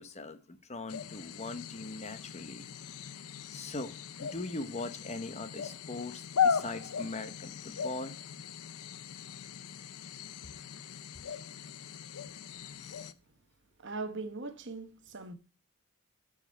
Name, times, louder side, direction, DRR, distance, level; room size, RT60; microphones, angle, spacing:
voice 1, 0.0-2.7 3.5-8.1, left 2 dB, 30° left, 0.9 m, -40 dB
sound 1, 0.9-13.1, left 7 dB, 85° left, 0.6 m, -37 dB
voice 2, 13.8-15.3, right 3 dB, 55° right, 1.0 m, -40 dB
12.0 x 5.0 x 5.4 m
head